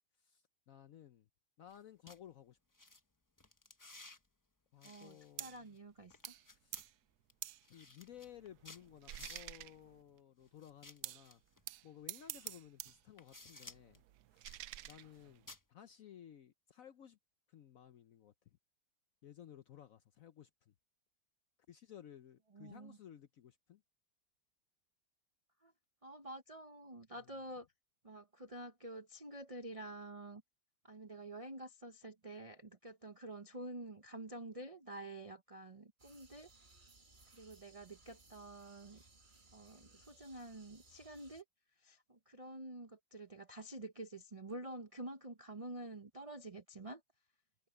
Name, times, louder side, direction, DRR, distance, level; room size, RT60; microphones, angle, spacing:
voice 1, 0.2-1.3 1.6-2.6 4.7-5.8 6.6-6.9 7.7-11.4 11.8-14.0 14.3-14.5 14.8-17.2 17.5-18.6 19.2-20.7 21.7-23.8 27.1-27.3, left 10 dB, 65° left, 0.9 m, -57 dB
sound 1, 1.7-1.8 2.1-2.2 2.7-3.0 3.4-4.2 4.8-5.8 6.1-6.9 7.3-7.4 7.6-9.6 10.6-11.6 12.4-12.5 12.9-14.0 14.4-15.2 15.5-15.6, left 2 dB, 20° left, 0.4 m, -57 dB
voice 2, 4.8-6.3 22.5-23.0 25.6-25.7 26.0-27.7 28.0-30.4 30.8-36.5 37.3-39.0 39.5-41.4 41.8-47.0, right 1 dB, 40° right, 0.4 m, -49 dB
sound 2, 5.4-5.6 6.2-6.5 6.7-6.9 7.4-7.6 8.1-10.2 11.0-11.3 11.6-13.0 13.3-15.6, right 14 dB, 70° right, 1.0 m, -49 dB
sound 3, 36.0-41.4, right 3 dB, 25° right, 1.9 m, -64 dB
omnidirectional pair, 2.0 m